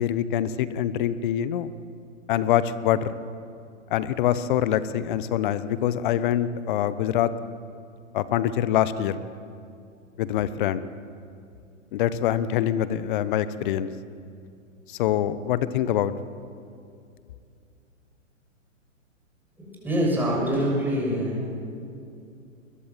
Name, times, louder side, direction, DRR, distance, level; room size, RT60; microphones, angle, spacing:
voice 1, 0.0-1.7 2.3-3.2 3.9-7.3 8.1-9.2 10.2-10.8 11.9-13.9 14.9-16.1, left 11 dB, 40° left, 15 dB, 1.1 m, -24 dB
voice 2, 19.6-21.4, equal, 5° right, -3 dB, 7.0 m, -25 dB
21.5 x 21.0 x 7.7 m, 2.5 s
hypercardioid pair, 130°, 39 cm